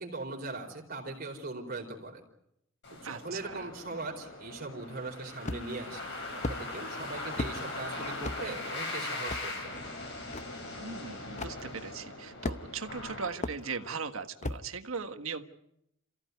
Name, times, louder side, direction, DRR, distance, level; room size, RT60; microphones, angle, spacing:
voice 1, 0.0-2.2 2.9-9.8, right 3 dB, 45° right, 1 dB, 4.3 m, -40 dB
sound 1, 2.8-14.0, left 2 dB, 55° left, 7.5 m, -40 dB
voice 2, 3.0-3.7 10.7-15.4, right 5 dB, 85° right, 7 dB, 1.5 m, -39 dB
sound 2, 5.4-5.8 6.4-6.6 7.4-7.6 8.2-8.4 9.3-9.4 10.3-10.4 11.4-11.6 12.4-12.8 13.4-13.6 14.4-14.6, left 2 dB, 35° left, 0.8 m, -34 dB
28.0 x 15.5 x 9.5 m, 0.80 s
head